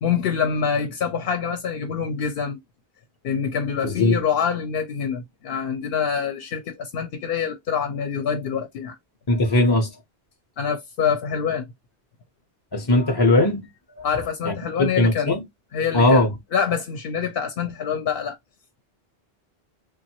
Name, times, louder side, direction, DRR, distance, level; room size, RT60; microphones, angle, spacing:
voice 1, 0.0-2.6 3.2-8.9 10.6-11.7 14.0-15.4 15.7-16.2 16.5-18.4, left 7 dB, 65° left, 0.7 m, -25 dB
voice 2, 3.8-4.2 9.3-9.9 12.7-13.7 14.0-14.2 14.4-15.4 15.9-16.3, left 2 dB, 30° left, 0.5 m, -19 dB
3.1 x 2.2 x 2.8 m
omnidirectional pair, 1.1 m